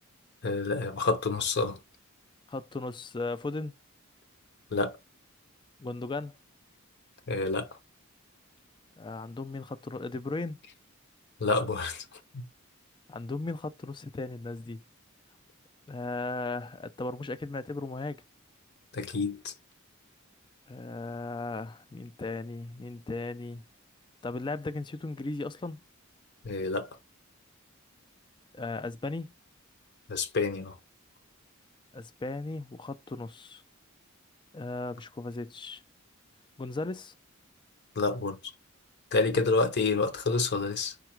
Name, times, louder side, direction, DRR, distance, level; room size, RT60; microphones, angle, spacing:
voice 1, 0.4-1.8 4.7-5.0 7.3-7.7 11.4-12.0 12.3-12.4 18.9-19.5 26.4-26.9 30.1-30.7 38.0-38.4 39.1-40.9, left 3 dB, 50° left, 0.7 m, -28 dB
voice 2, 2.5-3.7 5.8-6.3 9.0-10.6 13.1-14.8 15.9-18.2 20.7-23.6 24.2-25.8 28.5-29.3 31.9-33.6 34.5-35.8 36.6-37.1, left 3 dB, 20° left, 0.4 m, -36 dB
4.8 x 2.3 x 4.4 m
head